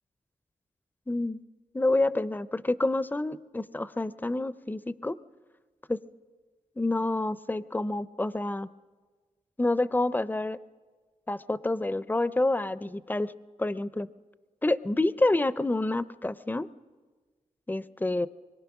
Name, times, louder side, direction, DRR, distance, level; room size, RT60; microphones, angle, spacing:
voice 1, 1.1-1.4 1.7-5.2 5.9-6.0 6.8-8.7 9.6-10.6 11.3-13.3 13.6-14.1 14.6-16.7 17.7-18.3, left 2 dB, 15° left, 16 dB, 0.6 m, -28 dB
24.5 x 22.5 x 6.0 m, 1.4 s
wide cardioid pair, 80°, 14 cm